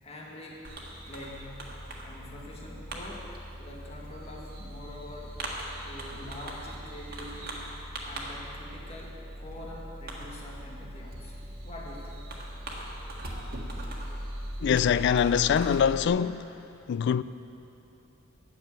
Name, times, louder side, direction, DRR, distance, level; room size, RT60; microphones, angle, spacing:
voice 1, 0.0-0.6 1.1-1.6 2.0-3.3 3.6-5.4 5.8-7.7 8.0-12.2, left 1 dB, 30° left, 1.7 m, -45 dB
Fireworks, 0.6-16.1, right 1 dB, 45° right, 1.6 m, -40 dB
voice 2, 14.6-16.5 16.9-17.2, left 8 dB, 55° left, 0.3 m, -24 dB
10.5 x 7.2 x 9.0 m
head